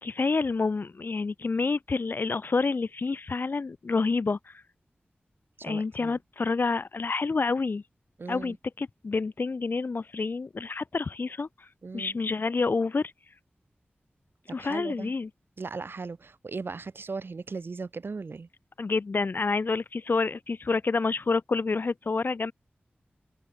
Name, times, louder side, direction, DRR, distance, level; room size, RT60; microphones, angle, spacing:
voice 1, 0.0-4.5 5.6-7.8 8.3-11.7 11.9-13.1 14.5-15.3 18.8-22.5, left 4 dB, 60° left, 0.7 m, -28 dB
voice 2, 5.6-6.2 8.2-8.6 11.8-12.1 14.5-15.1 15.6-18.5, right 4 dB, 70° right, 2.2 m, -37 dB
wide cardioid pair, 85°, 4 cm